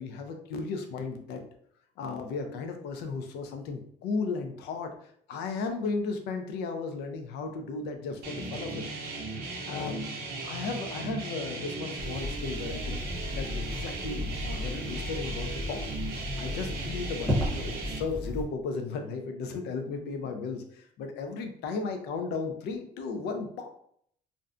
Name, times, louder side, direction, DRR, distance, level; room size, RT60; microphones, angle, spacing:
voice 1, 0.0-1.4 2.0-8.9 9.6-10.1 10.4-13.0 13.4-15.8 16.3-23.7, left 4 dB, 80° left, 5 dB, 0.5 m, -35 dB
sound 1, 8.2-18.0, right 3 dB, 70° right, 0.6 m, -37 dB
sound 2, 12.0-18.4, left 1 dB, 15° left, 1.1 m, -34 dB
2.5 x 2.1 x 2.4 m, 0.66 s
cardioid pair, 110°, 17 cm